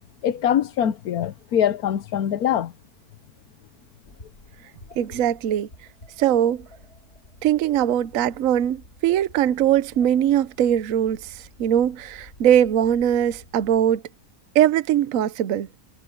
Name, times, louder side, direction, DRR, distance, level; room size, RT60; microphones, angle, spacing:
voice 1, 0.2-2.7, left 9 dB, 75° left, 1.3 m, -23 dB
sound 1, 4.0-14.0, left 2 dB, 45° left, 4.3 m, -50 dB
voice 2, 5.0-5.7 6.2-6.7 7.4-14.0 14.5-15.7, right 10 dB, 65° right, 1.1 m, -21 dB
omnidirectional pair, 1.6 m